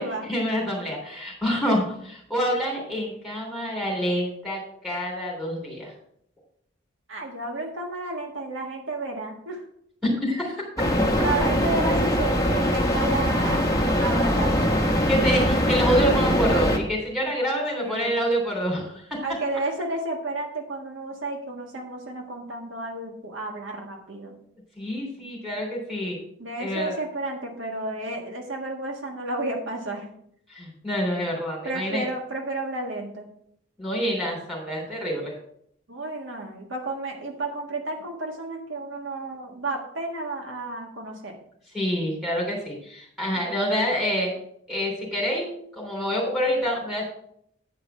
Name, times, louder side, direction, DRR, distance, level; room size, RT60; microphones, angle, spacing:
voice 1, 0.3-5.9 10.0-10.6 15.1-19.2 24.8-26.2 26.6-27.0 30.5-32.1 33.8-35.3 41.7-44.3 44.7-47.1, equal, ahead, -3 dB, 3.2 m, -27 dB
voice 2, 7.1-9.6 11.2-13.6 14.0-14.8 17.8-18.2 19.2-24.4 26.4-30.1 31.6-33.3 35.9-41.4 43.4-43.5, right 2 dB, 75° right, 2 dB, 1.6 m, -32 dB
sound 1, 10.8-16.8, equal, 15° left, 1.1 m, -22 dB
9.6 x 4.8 x 6.6 m, 0.68 s
head